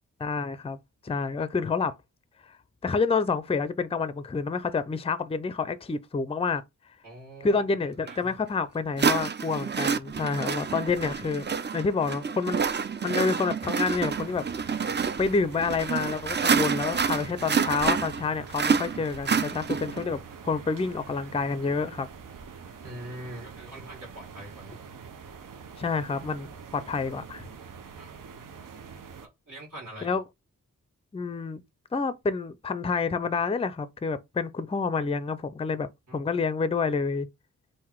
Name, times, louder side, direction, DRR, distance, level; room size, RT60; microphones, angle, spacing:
voice 1, 0.2-0.8 1.0-1.9 2.8-6.6 7.4-11.5 11.7-12.7 13.0-14.4 14.8-22.1 25.8-27.5 30.0-30.2 31.1-31.6 31.9-37.3, left 4 dB, 20° left, 0.4 m, -28 dB
voice 2, 7.0-7.6 8.0-8.3 22.8-24.8 28.0-28.2 29.5-30.2 36.1-36.3, right 1 dB, 60° right, 2.0 m, -43 dB
sound 1, 8.1-8.2 9.0-20.0, right 6 dB, 35° right, 0.5 m, -28 dB
sound 2, 13.8-29.3, right 6 dB, 80° right, 0.8 m, -45 dB
3.8 x 2.6 x 4.5 m
wide cardioid pair, 75°, 32 cm